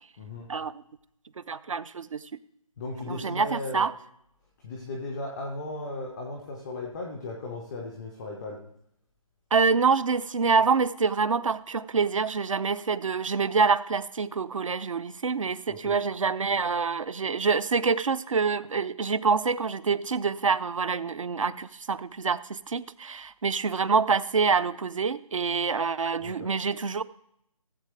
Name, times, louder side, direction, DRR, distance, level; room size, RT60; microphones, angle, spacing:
voice 1, 0.5-0.8 1.5-2.2 3.1-3.9 9.5-27.0, right 5 dB, 60° right, 18 dB, 0.6 m, -26 dB
voice 2, 2.8-3.9 4.6-8.6 15.7-16.0 26.2-26.6, left 2 dB, ahead, -9 dB, 0.3 m, -36 dB
17.0 x 7.7 x 3.3 m, 0.74 s
figure-of-eight pair, 160°, 19 cm